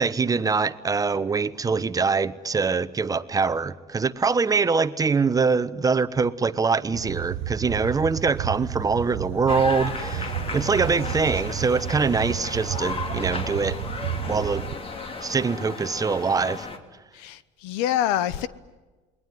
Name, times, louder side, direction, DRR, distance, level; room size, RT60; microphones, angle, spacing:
voice 1, 0.0-13.8 14.2-14.7 15.2-16.7, right 4 dB, 25° right, 1.1 m, -24 dB
sound 1, 6.9-14.7, right 11 dB, 80° right, 1.0 m, -32 dB
sound 2, 9.5-16.8, left 4 dB, 35° left, 2.8 m, -34 dB
voice 2, 17.1-18.5, left 11 dB, 85° left, 1.0 m, -26 dB
28.5 x 21.0 x 9.3 m
supercardioid pair, 95°, 16 cm